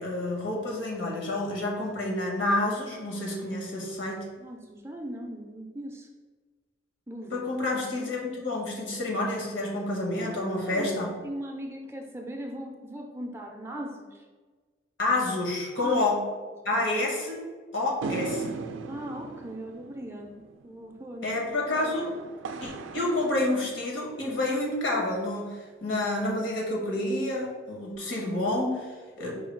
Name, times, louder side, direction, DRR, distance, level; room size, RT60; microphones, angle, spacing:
voice 1, 0.0-4.3 7.3-11.1 15.0-16.2 16.6-17.4 17.7-18.6 21.2-22.1 22.6-29.4, left 2 dB, 80° left, -1 dB, 1.1 m, -29 dB
voice 2, 4.4-6.1 7.1-7.5 10.2-14.3 15.8-16.0 16.7-16.9 18.9-21.4, right 1 dB, 15° right, 1 dB, 0.4 m, -39 dB
sound 1, 18.0-24.5, right 4 dB, 85° right, 0.3 m, -39 dB
4.7 x 2.3 x 4.4 m, 1.4 s
head